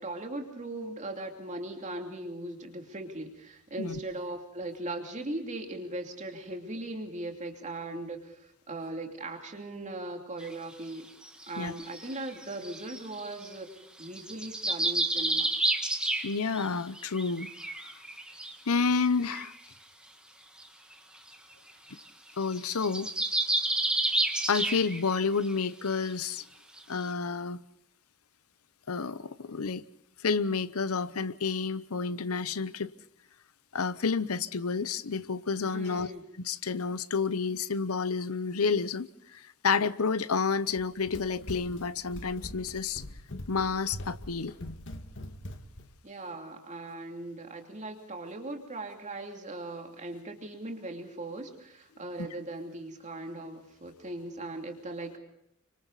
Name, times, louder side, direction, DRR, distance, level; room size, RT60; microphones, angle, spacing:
voice 1, 0.0-11.1 11.5-13.7 14.0-15.5 35.7-36.2 46.0-55.2, right 2 dB, 35° right, 2.8 m, -39 dB
sound 1, 10.4-10.5 11.2-13.5 14.0-16.7 16.9-18.5 19.0-19.1 19.3-19.5 20.6-20.7 20.9-21.0 21.3-21.5 21.9-22.0 22.3-25.2 25.5-25.6 26.1-26.2 26.8-26.9, right 2 dB, 5° right, 1.8 m, -30 dB
voice 2, 16.2-17.5 18.7-19.5 22.4-23.1 24.5-26.4 26.9-27.6 28.9-29.8 30.2-32.9 33.7-36.1 36.4-39.1 39.3-43.0 43.5-44.5, left 5 dB, 85° left, 0.9 m, -30 dB
Run, 40.7-45.9, left 1 dB, 60° left, 1.8 m, -43 dB
29.5 x 25.0 x 4.1 m
head